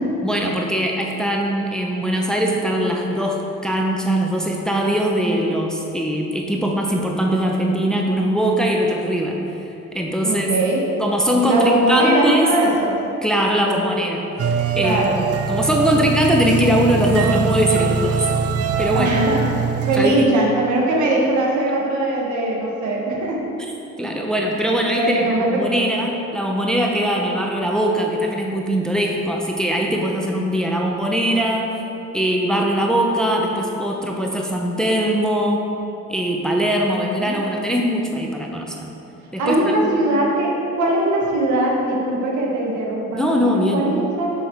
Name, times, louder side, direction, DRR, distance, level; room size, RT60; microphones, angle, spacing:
voice 1, 0.2-9.4 9.9-10.5 11.0-12.5 13.2-15.0 15.5-18.3 18.8-19.1 20.0-20.3 24.0-31.7 32.1-35.6 36.1-38.9 39.3-40.0 43.1-43.8, equal, ahead, 0 dB, 0.7 m, -21 dB
voice 2, 10.2-10.8 11.4-13.0 14.8-15.2 18.9-19.5 19.8-23.4 24.9-25.5 25.7-25.8 36.9-37.4 39.4-44.3, right 1 dB, 70° right, -2 dB, 1.5 m, -21 dB
sound 1, 14.4-20.1, right 6 dB, 50° right, 0.5 m, -22 dB
6.1 x 5.5 x 4.5 m, 2.8 s
cardioid pair, 90°, 30 cm